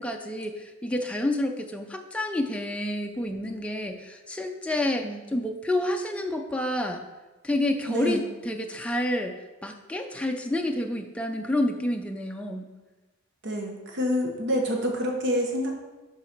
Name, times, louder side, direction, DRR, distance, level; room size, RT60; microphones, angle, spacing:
voice 1, 0.0-5.0 5.3-7.0 7.4-9.4 9.6-12.7, left 1 dB, 5° left, 3 dB, 0.4 m, -29 dB
voice 2, 7.9-8.2 13.4-15.8, equal, 55° right, 1 dB, 1.0 m, -27 dB
7.4 x 3.9 x 5.8 m, 1.2 s
head